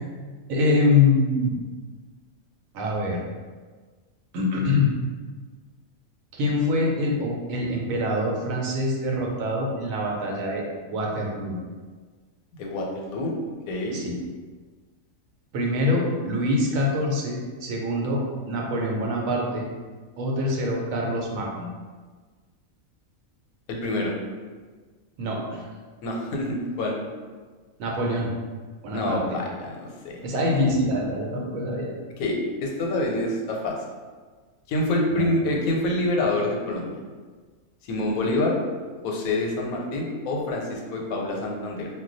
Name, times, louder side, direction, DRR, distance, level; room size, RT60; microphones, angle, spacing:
voice 1, 0.5-1.5 2.7-3.2 4.3-4.9 6.3-11.5 13.9-14.2 15.5-19.7 20.2-21.7 25.2-25.6 27.8-28.3 28.8-29.4 30.2-31.9 35.1-35.3, left 2 dB, 80° right, -1 dB, 1.0 m, -25 dB
voice 2, 12.5-13.3 13.7-14.0 23.7-24.2 26.0-27.0 28.9-30.2 32.2-33.8 34.7-37.0 37.8-38.6 39.0-41.9, left 2 dB, 90° left, 0 dB, 1.0 m, -26 dB
2.2 x 2.2 x 3.8 m, 1.5 s
omnidirectional pair, 1.4 m